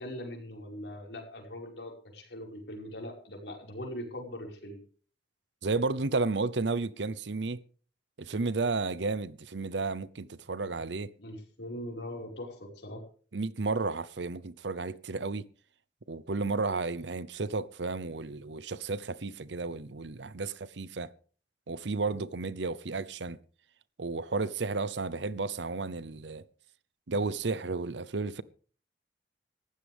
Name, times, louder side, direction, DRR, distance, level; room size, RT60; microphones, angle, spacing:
voice 1, 0.0-4.8 11.2-13.0, left 1 dB, 75° left, 5.4 m, -41 dB
voice 2, 5.6-7.6 8.2-11.1 13.3-15.5 16.1-21.1 21.7-23.4 24.0-26.4 27.1-28.4, right 3 dB, 85° right, 0.8 m, -32 dB
19.0 x 15.0 x 3.6 m
head